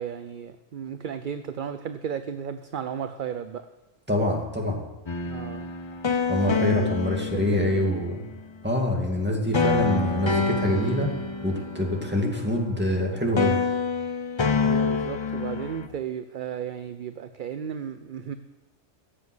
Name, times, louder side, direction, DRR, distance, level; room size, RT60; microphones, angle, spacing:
voice 1, 0.0-3.7 5.2-5.7 6.6-6.9 7.3-7.9 14.6-18.3, right 8 dB, 55° right, 10 dB, 0.6 m, -34 dB
voice 2, 4.1-4.8 6.3-8.2 8.6-11.1 11.4-13.6, left 1 dB, 10° right, 0 dB, 2.3 m, -25 dB
sound 1, 5.1-8.2 9.5-13.0 13.4-15.9, left 4 dB, 30° left, 0.6 m, -27 dB
15.5 x 7.6 x 7.9 m, 1.1 s
omnidirectional pair, 1.3 m